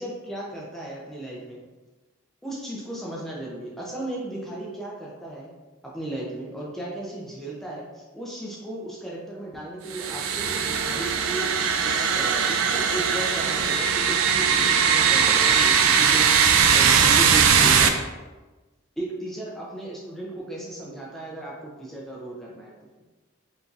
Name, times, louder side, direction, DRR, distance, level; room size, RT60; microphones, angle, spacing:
voice 1, 0.0-1.6 2.4-5.5 5.9-16.3 16.7-18.0 19.0-22.7, right 1 dB, ahead, -5 dB, 0.5 m, -35 dB
sound 1, 9.9-17.9, right 6 dB, 85° right, 0.4 m, -20 dB
4.8 x 2.6 x 2.5 m, 1.2 s
head